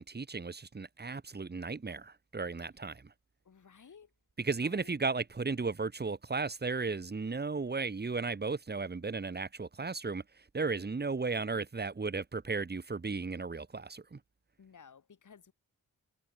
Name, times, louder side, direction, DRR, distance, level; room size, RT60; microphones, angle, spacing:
voice 1, 0.0-3.0 4.4-10.2 10.5-14.2, right 4 dB, 30° right, 2.3 m, -35 dB
voice 2, 3.4-4.1 4.6-4.9 14.6-15.5, left 6 dB, 60° left, 5.8 m, -55 dB
wide cardioid pair, 175°, 34 cm